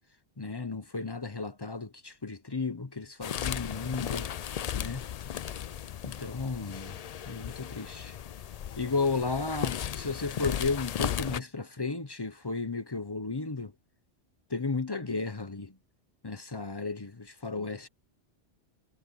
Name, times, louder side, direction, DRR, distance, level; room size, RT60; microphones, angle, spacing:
voice 1, 0.4-4.3 4.8-5.1 6.0-7.0 7.3-8.2 8.8-13.7 14.5-15.8 16.2-17.9, left 4 dB, 25° left, 0.8 m, -34 dB
sound 1, 3.2-11.4, left 9 dB, 65° left, 0.4 m, -36 dB
omnidirectional pair, 1.2 m